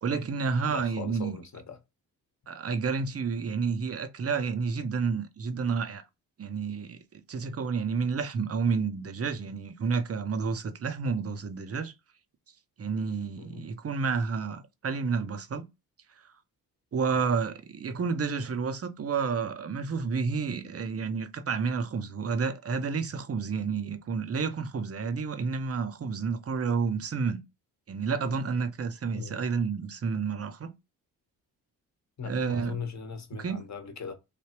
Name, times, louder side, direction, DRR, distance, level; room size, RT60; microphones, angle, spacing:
voice 1, 0.0-1.4 2.5-6.0 6.4-11.9 12.8-15.7 16.9-27.4 27.9-30.7 32.2-32.8 33.4-33.6, right 5 dB, 35° right, 0.7 m, -30 dB
voice 2, 0.7-1.8 13.4-13.6 29.1-29.4 32.2-34.1, left 5 dB, 40° left, 1.0 m, -39 dB
3.4 x 2.3 x 2.9 m
supercardioid pair, 50°, 42 cm